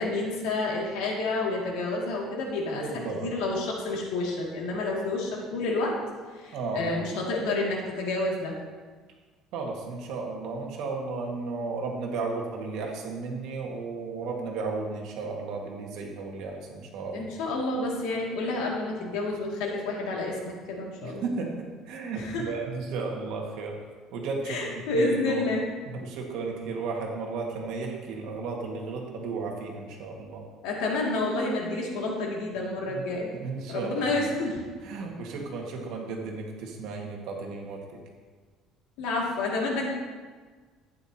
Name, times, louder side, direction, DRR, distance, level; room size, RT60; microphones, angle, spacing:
voice 1, 0.0-5.9 6.3-8.6 17.1-21.3 22.2-22.4 24.5-25.7 30.6-33.3 33.7-34.6 39.0-39.8, left 2 dB, 90° left, -2 dB, 2.3 m, -29 dB
voice 2, 2.7-3.3 6.5-7.1 9.5-17.3 21.0-23.8 24.1-25.5 25.9-30.4 32.9-33.0 33.3-34.1 34.8-37.9, right 4 dB, 65° right, 0 dB, 1.7 m, -34 dB
11.5 x 9.3 x 2.9 m, 1.5 s
cardioid pair, 170°, 0 cm